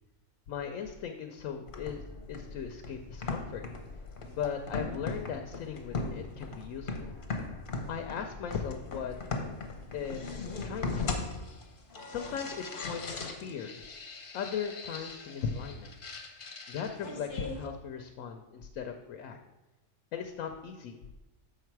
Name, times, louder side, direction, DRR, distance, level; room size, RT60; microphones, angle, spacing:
voice 1, 0.5-2.0 2.3-3.6 4.3-7.2 7.9-9.1 9.9-11.3 12.1-13.8 14.3-15.9 16.7-19.4 20.1-21.0, left 7 dB, 80° left, 5 dB, 1.0 m, -38 dB
sound 1, 1.7-17.7, left 3 dB, 45° left, 1.0 m, -39 dB
6.7 x 5.7 x 4.6 m, 1.0 s
omnidirectional pair, 1.4 m